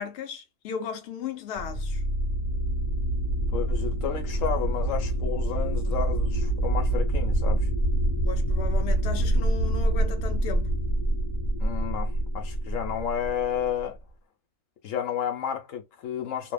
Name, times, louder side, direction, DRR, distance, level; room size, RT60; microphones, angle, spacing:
voice 1, 0.0-2.0 8.2-10.7, left 6 dB, 65° left, 0.8 m, -36 dB
sound 1, 1.6-13.8, right 1 dB, 35° left, 1.1 m, -26 dB
voice 2, 3.5-7.7 11.6-14.0 14.8-16.5, left 9 dB, 80° left, 1.1 m, -31 dB
2.8 x 2.1 x 2.3 m
omnidirectional pair, 1.3 m